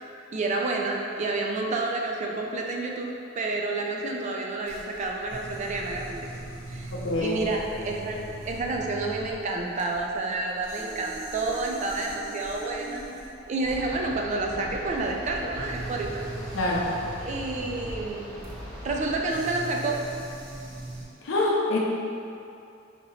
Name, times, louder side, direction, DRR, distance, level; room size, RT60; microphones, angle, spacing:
voice 1, 0.3-3.1 3.4-6.3 6.7-6.9 7.2-13.0 13.5-16.3 17.2-18.5 18.8-20.0, right 3 dB, 35° right, 0 dB, 0.3 m, -29 dB
sound 1, 4.7-21.1, right 1 dB, 70° right, 0.6 m, -41 dB
voice 2, 6.9-7.4 16.5-17.0 21.2-21.8, left 2 dB, 80° left, -3 dB, 0.6 m, -25 dB
sound 2, 13.6-19.2, equal, 10° left, 0.8 m, -41 dB
2.9 x 2.7 x 4.1 m, 2.6 s
head